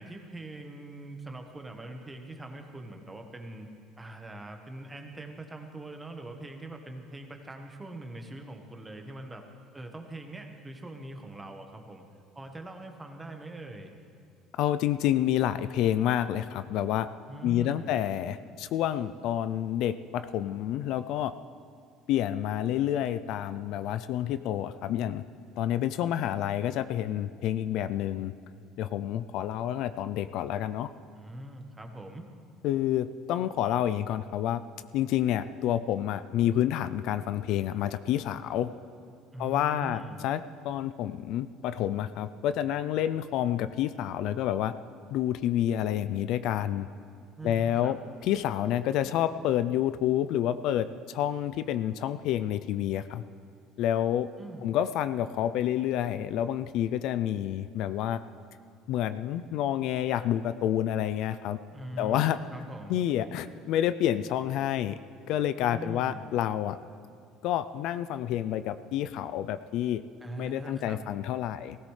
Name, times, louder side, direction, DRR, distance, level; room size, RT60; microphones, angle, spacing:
voice 1, 0.0-9.4 9.7-12.0 12.3-13.9 17.3-17.9 31.1-32.2 39.3-40.2 47.4-48.0 54.4-54.7 61.7-63.0 65.6-66.2 70.2-71.0, right 1 dB, 15° right, 4 dB, 1.2 m, -42 dB
voice 2, 14.6-17.1 17.4-21.3 22.1-25.2 25.6-28.3 28.8-30.9 32.6-34.6 34.9-38.7 39.4-44.7 45.1-46.9 47.4-53.2 53.8-54.3 54.6-58.2 58.9-61.6 62.0-62.4 62.9-65.0 65.3-66.8 67.4-70.0 70.4-71.8, left 11 dB, 60° left, 12 dB, 0.4 m, -29 dB
18.5 x 16.5 x 3.3 m, 2.2 s
cardioid pair, 140°, 0 cm